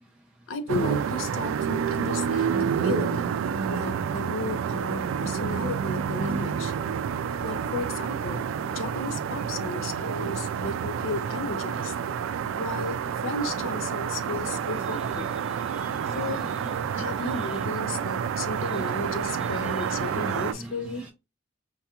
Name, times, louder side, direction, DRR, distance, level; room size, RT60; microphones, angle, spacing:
voice 1, 0.5-3.2 3.7-6.7 7.4-11.9 12.6-15.3 16.1-16.4 16.9-21.1, left 3 dB, 90° left, 0.6 m, -34 dB
sound 1, 0.7-20.5, right 7 dB, 85° right, 0.3 m, -29 dB
voice 2, 14.9-16.7 17.3-17.6 19.3-21.1, right 1 dB, 5° right, 0.4 m, -42 dB
4.6 x 2.9 x 2.3 m
head